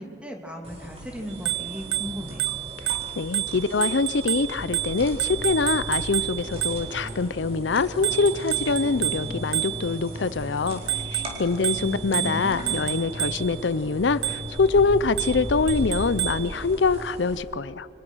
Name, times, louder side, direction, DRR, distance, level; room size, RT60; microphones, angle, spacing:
voice 1, 0.0-2.4 11.8-12.9, equal, 5° right, 2 dB, 2.8 m, -36 dB
sound 1, 0.6-17.4, equal, 35° right, 4.3 m, -38 dB
Bicycle bell, 1.3-7.1 8.0-10.1 10.7-13.6 14.2-14.6 15.2-16.5, right 17 dB, 80° right, 0.6 m, -30 dB
voice 2, 2.8-17.9, left 4 dB, 80° left, 16 dB, 0.6 m, -24 dB
sound 2, 4.5-16.7, equal, 50° right, 5.7 m, -40 dB
29.5 x 25.0 x 6.3 m, 2.6 s
head